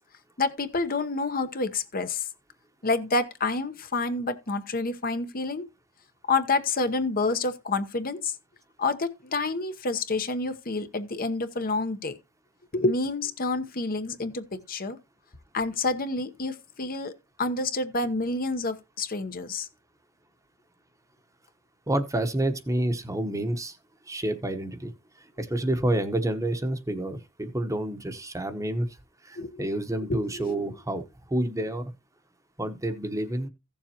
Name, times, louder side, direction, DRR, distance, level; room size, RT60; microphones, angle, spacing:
voice 1, 0.4-2.3 2.8-5.7 6.3-8.3 8.8-12.1 12.7-15.0 15.5-19.7 29.4-29.6 30.1-30.7, left 3 dB, 45° left, 1.0 m, -28 dB
voice 2, 21.9-23.8 24.1-24.9 25.4-28.9 29.2-31.0 31.3-31.8 32.6-33.5, right 1 dB, 15° right, 1.0 m, -28 dB
15.5 x 7.2 x 2.9 m
head